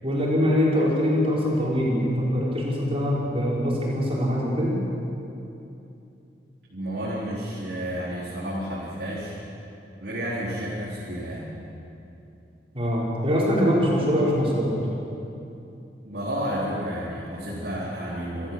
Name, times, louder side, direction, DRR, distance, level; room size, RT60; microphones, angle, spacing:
voice 1, 0.0-4.8 12.7-14.8, equal, 35° right, -5 dB, 5.9 m, -23 dB
voice 2, 6.7-9.4 10.0-11.5 16.0-18.5, equal, 70° right, -7 dB, 4.2 m, -31 dB
27.0 x 14.5 x 7.7 m, 2.8 s
head